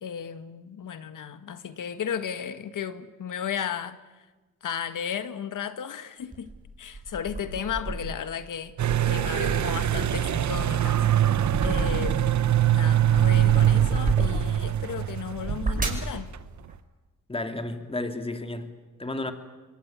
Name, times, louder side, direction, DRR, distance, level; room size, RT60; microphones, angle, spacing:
voice 1, 0.0-4.2 4.6-6.5 6.8-8.7 9.1-11.1 11.6-12.4 12.7-16.3, left 8 dB, 75° left, 1.7 m, -34 dB
sound 1, 6.3-8.2 8.7-12.4 12.8-14.7 15.3-16.1, right 2 dB, 25° right, 5.5 m, -32 dB
sound 2, 8.8-16.4, right 11 dB, 60° right, 0.9 m, -23 dB
voice 2, 17.3-18.7 19.0-19.3, left 2 dB, 15° left, 2.7 m, -32 dB
28.0 x 22.0 x 9.4 m
cardioid pair, 100°, 32 cm